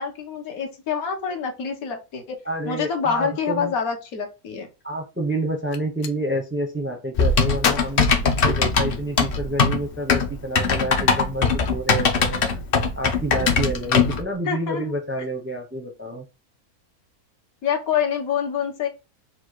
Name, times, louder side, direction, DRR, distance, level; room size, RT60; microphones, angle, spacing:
voice 1, 0.0-2.2 2.7-4.7 14.5-14.9 17.6-18.9, left 7 dB, 70° left, 3 dB, 1.4 m, -26 dB
voice 2, 2.4-3.7 4.8-12.4 13.0-16.2, right 1 dB, 15° right, 4 dB, 0.4 m, -28 dB
Gunshot gunfire, 5.5-6.2 7.6-9.1, left 7 dB, 90° left, 1.2 m, -30 dB
Typing, 7.2-14.2, left 4 dB, 50° left, 0.7 m, -21 dB
4.3 x 2.4 x 4.5 m, 0.28 s
omnidirectional pair, 1.6 m